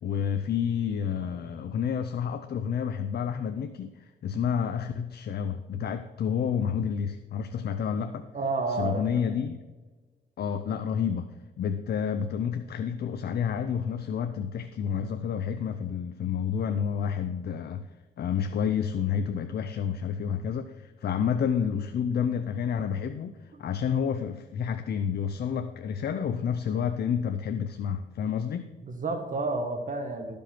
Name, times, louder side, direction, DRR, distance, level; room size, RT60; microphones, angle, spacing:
voice 1, 0.0-8.3 8.7-9.6 10.4-11.3 11.6-17.9 18.2-28.7, left 7 dB, 60° left, 9 dB, 0.6 m, -29 dB
voice 2, 8.3-9.2 28.8-30.4, right 3 dB, 45° right, 5 dB, 1.3 m, -30 dB
13.5 x 5.3 x 5.8 m, 1.3 s
cardioid pair, 100°, 18 cm